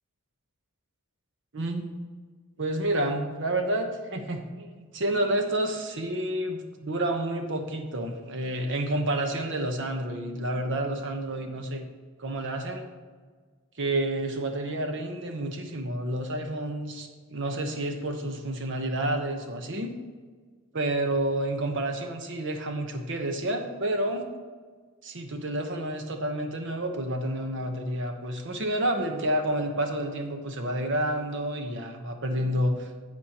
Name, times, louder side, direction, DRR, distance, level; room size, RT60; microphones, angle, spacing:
voice 1, 1.5-1.9 2.6-11.8 12.2-12.9 13.8-19.9 20.7-24.3 25.0-32.9, right 1 dB, 60° right, 5 dB, 1.0 m, -29 dB
10.5 x 8.0 x 2.9 m, 1.5 s
head